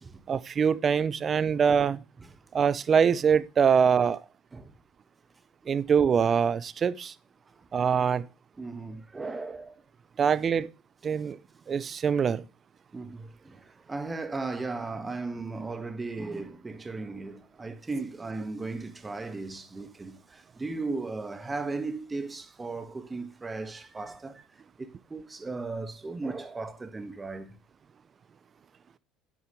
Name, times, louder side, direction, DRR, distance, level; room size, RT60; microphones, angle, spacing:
voice 1, 0.3-2.0 2.5-4.2 5.7-7.1 7.7-8.3 10.2-10.7 11.0-11.4 11.7-12.4, right 7 dB, 40° right, 0.6 m, -24 dB
voice 2, 8.6-9.7 12.9-24.4 24.8-27.6, right 3 dB, 20° right, 1.6 m, -36 dB
9.6 x 9.3 x 3.2 m
hypercardioid pair, 75°, 0 cm